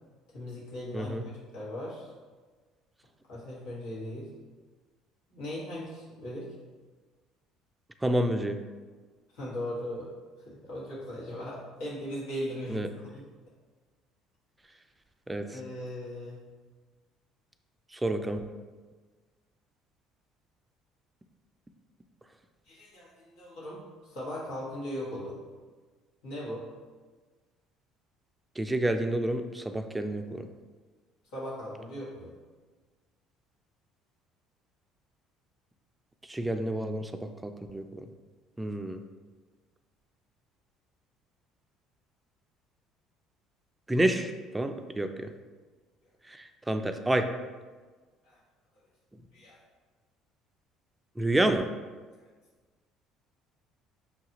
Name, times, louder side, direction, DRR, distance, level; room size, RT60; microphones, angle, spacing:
voice 1, 0.3-2.1 3.3-4.3 5.3-6.5 9.3-10.1 10.4-13.2 15.4-16.4 22.7-25.4 26.2-26.6 31.3-32.3 48.2-48.4 49.3-49.6 52.2-52.3, left 1 dB, 90° left, -7 dB, 1.5 m, -38 dB
voice 2, 8.0-8.6 12.7-12.9 15.3-15.6 17.9-18.4 28.6-30.5 36.3-38.1 38.6-39.0 43.9-45.3 46.3-47.3 51.2-51.7, right 1 dB, 10° right, 7 dB, 0.4 m, -29 dB
5.9 x 2.4 x 2.9 m, 1.4 s
supercardioid pair, 85°, 0 cm